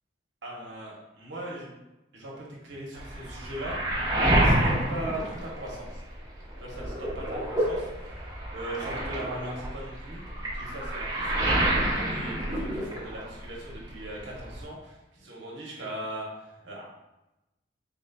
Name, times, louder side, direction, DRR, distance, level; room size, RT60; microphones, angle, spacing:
voice 1, 0.4-1.7 2.1-6.0 6.6-8.2 8.5-11.5 11.9-16.8, right 1 dB, 80° right, -3 dB, 0.9 m, -39 dB
Waves surf, 2.9-6.2 6.5-13.4 13.7-14.6, right 1 dB, 20° right, 0.8 m, -28 dB
4.0 x 3.8 x 2.2 m, 0.98 s
head